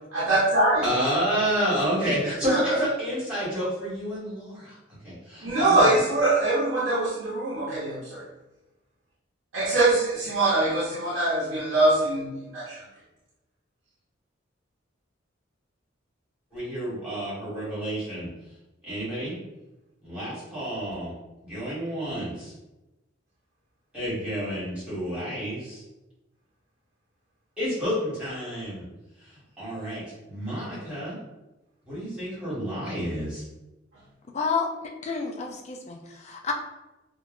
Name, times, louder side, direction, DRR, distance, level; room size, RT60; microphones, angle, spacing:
voice 1, 0.1-0.8 2.0-2.2 2.5-2.7 5.4-8.2 9.5-12.8, right 2 dB, 70° right, -7 dB, 0.6 m, -23 dB
voice 2, 0.8-4.8 5.0-5.9 16.5-18.3 18.9-19.3 20.0-21.1 21.4-22.5 23.9-25.8 27.6-28.8 29.2-29.3 29.6-31.2 31.9-33.4, equal, 5° right, -10 dB, 1.5 m, -29 dB
voice 3, 34.3-34.7 35.0-36.5, left 5 dB, 35° left, 2 dB, 0.3 m, -30 dB
2.9 x 2.1 x 2.4 m, 1.0 s
head